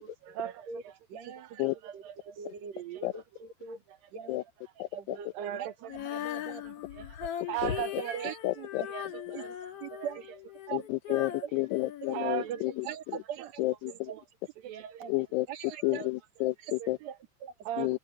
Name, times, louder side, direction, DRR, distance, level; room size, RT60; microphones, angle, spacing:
voice 1, 0.0-0.9 1.4-2.4 5.1-5.7 6.6-8.4 8.9-9.6 9.9-10.1 11.1-11.2 12.1-13.0 13.4-14.2 14.6-15.1 15.7-16.1 16.8-16.9 17.7-18.0, right 11 dB, 80° right, 2.2 m, -39 dB
voice 2, 1.1-1.7 1.9-2.0 2.4-3.8 4.1-4.4 4.9-6.6 8.2-8.9 9.3-9.4 9.8-10.2 10.7-10.8 12.1-12.2 12.8-13.5 14.1-14.2 15.0-15.1 15.5-16.0 16.6-16.7 17.0-17.5, right 8 dB, 45° right, 3.2 m, -41 dB
voice 3, 4.8-5.2 7.6-8.0 8.4-8.8 10.7-13.2 13.6-14.1 15.1-15.5 15.8-17.0 17.8-18.0, left 20 dB, 85° left, 2.9 m, -31 dB
Female singing, 5.9-12.9, left 11 dB, 55° left, 1.7 m, -40 dB
omnidirectional pair, 4.7 m